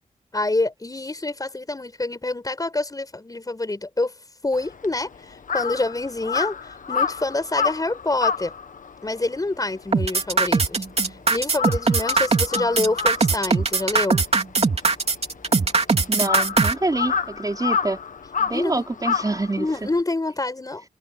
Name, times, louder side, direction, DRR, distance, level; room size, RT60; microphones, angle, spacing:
voice 1, 0.3-4.1 4.4-8.5 9.0-14.2 18.5-18.9 19.6-20.8, left 2 dB, 25° left, 7.1 m, -27 dB
Crow, 4.5-11.1 11.4-20.0, left 6 dB, 65° left, 1.4 m, -29 dB
sound 1, 9.9-16.7, right 4 dB, 45° right, 2.8 m, -20 dB
voice 2, 16.1-18.0 18.4-19.7, right 2 dB, 25° right, 4.4 m, -26 dB
wide cardioid pair, 120°, 14 cm